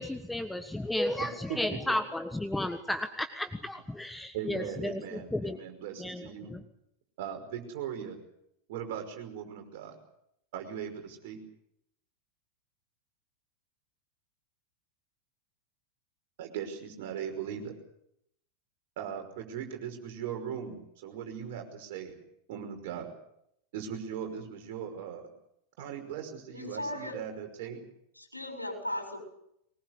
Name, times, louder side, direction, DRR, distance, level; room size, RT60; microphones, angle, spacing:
voice 1, 0.0-5.6 6.0-6.6, left 1 dB, 5° left, 10 dB, 1.4 m, -33 dB
voice 2, 1.2-1.8 4.3-6.6 7.2-8.2 8.7-10.0 10.5-11.4 16.4-17.7 19.0-22.2 22.5-23.1 23.7-25.3 25.8-27.8, right 8 dB, 50° right, 5 dB, 5.5 m, -39 dB
voice 3, 26.5-27.2 28.2-29.2, left 1 dB, 85° left, 4 dB, 7.2 m, -37 dB
23.0 x 20.5 x 8.2 m, 0.77 s
figure-of-eight pair, 90°, 0 cm